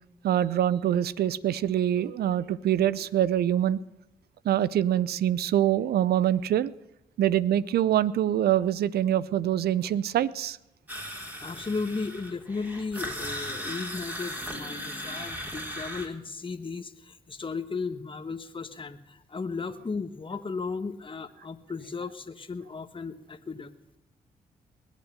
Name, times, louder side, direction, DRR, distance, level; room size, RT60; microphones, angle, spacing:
voice 1, 0.2-3.8 4.4-6.7 7.2-10.6, right 11 dB, 70° right, 20 dB, 0.6 m, -25 dB
sound 1, 10.9-16.1, equal, 10° right, 4.0 m, -37 dB
voice 2, 11.4-23.7, left 4 dB, 30° left, 8 dB, 1.2 m, -35 dB
20.5 x 8.3 x 6.7 m, 0.91 s
hypercardioid pair, 45°, 17 cm